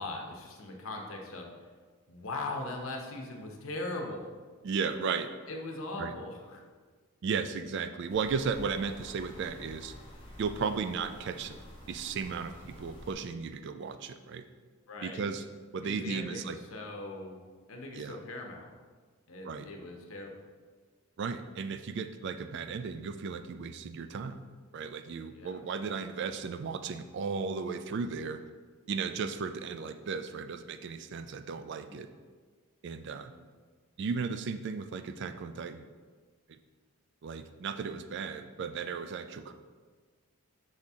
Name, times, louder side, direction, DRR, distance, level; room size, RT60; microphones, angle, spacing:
voice 1, 0.0-1.5 2.1-4.3 5.5-6.6 14.9-15.3 15.8-17.4 17.7-18.7 19.3-20.3 25.3-25.6 33.3-33.4, left 2 dB, 70° left, 1 dB, 0.8 m, -40 dB
voice 2, 4.6-5.3 6.0-6.1 7.2-9.9 10.4-11.6 11.9-14.5 15.0-15.4 15.7-16.6 17.9-18.2 19.4-19.7 21.2-24.4 24.7-28.4 28.9-32.1 32.8-33.3 34.0-35.9 36.5-36.6 37.2-39.5, right 5 dB, 55° right, 10 dB, 0.3 m, -35 dB
sound 1, 8.1-13.1, left 1 dB, 25° left, 1.1 m, -49 dB
6.4 x 4.2 x 3.5 m, 1.5 s
head